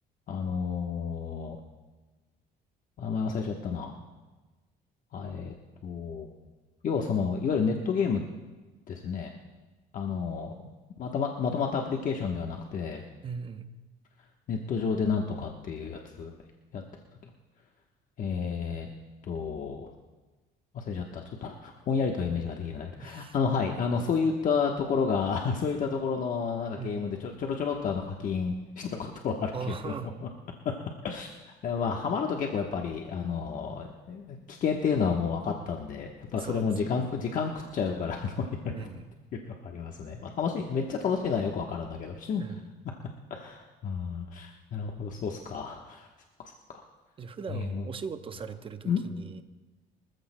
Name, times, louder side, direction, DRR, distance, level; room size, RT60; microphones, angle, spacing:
voice 1, 0.3-1.6 3.0-3.9 5.1-5.5 5.8-6.3 6.8-8.2 8.9-9.3 9.9-10.5 11.0-13.0 14.5-16.4 16.7-16.8 18.2-18.9 19.3-19.9 20.7-29.9 30.2-30.3 31.0-38.9 39.6-42.4 43.3-46.1 46.7-46.8 47.5-47.9 48.8-49.0, left 5 dB, 50° left, 1 dB, 1.1 m, -30 dB
voice 2, 13.2-13.7 23.0-23.3 26.8-27.2 29.5-30.1 36.3-36.7 38.7-39.0 42.4-42.7 47.2-49.4, right 6 dB, 30° right, 9 dB, 0.8 m, -39 dB
24.5 x 14.5 x 2.2 m, 1.2 s
cardioid pair, 110°, 17 cm